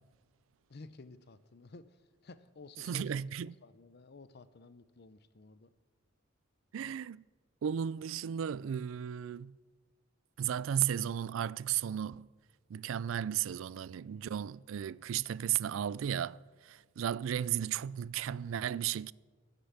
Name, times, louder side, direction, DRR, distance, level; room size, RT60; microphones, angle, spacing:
voice 1, 0.7-3.2 3.6-5.7, left 3 dB, 55° left, 0.7 m, -53 dB
voice 2, 2.8-3.5 6.7-7.2 7.6-9.5 10.4-12.3 12.7-19.1, right 9 dB, 75° right, 0.3 m, -34 dB
15.0 x 6.8 x 8.9 m
head